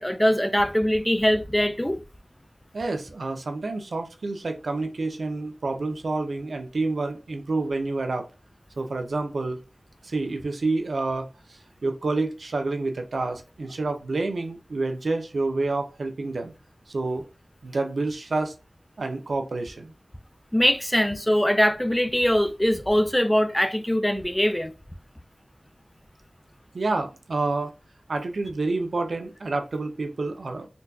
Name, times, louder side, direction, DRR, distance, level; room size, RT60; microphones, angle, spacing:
voice 1, 0.0-2.0 20.5-24.7, equal, 10° left, 0.3 m, -22 dB
voice 2, 2.7-8.3 8.8-9.6 10.0-16.5 16.9-17.2 17.6-18.5 19.0-19.9 26.7-27.7 28.1-30.7, right 3 dB, 85° right, 0.5 m, -28 dB
3.9 x 2.3 x 2.3 m
wide cardioid pair, 80°, 0 cm